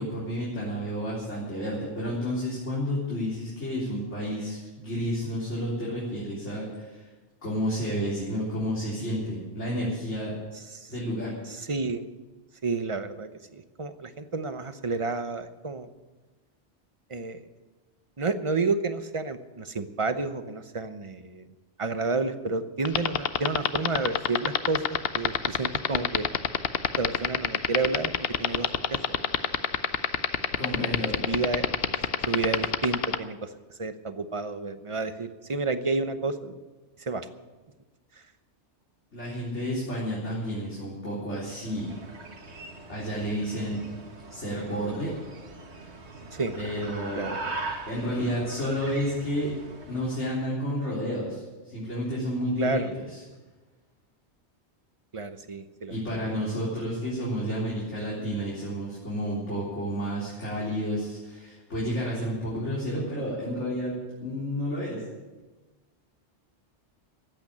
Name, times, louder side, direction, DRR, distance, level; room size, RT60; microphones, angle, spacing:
voice 1, 0.0-7.1 7.4-10.3 10.9-11.3 30.5-31.2 39.1-41.9 42.9-43.8 44.3-45.1 46.5-47.3 47.9-49.6 49.9-53.2 55.9-65.0, equal, 80° left, -7 dB, 4.1 m, -31 dB
voice 2, 11.5-12.0 12.6-15.9 17.1-17.4 18.2-21.5 21.8-24.8 25.1-26.3 27.0-28.1 28.4-29.0 30.8-31.0 31.3-31.7 32.3-33.5 33.8-36.6 37.0-37.3 46.3-46.6 47.1-47.4 52.6-52.9 55.1-56.2, right 3 dB, 30° right, 10 dB, 0.8 m, -30 dB
sound 1, 22.8-33.2, left 9 dB, 60° left, 0.9 m, -23 dB
sound 2, 41.5-50.1, right 3 dB, 70° right, 1.8 m, -41 dB
14.5 x 8.9 x 8.6 m, 1.2 s
omnidirectional pair, 1.2 m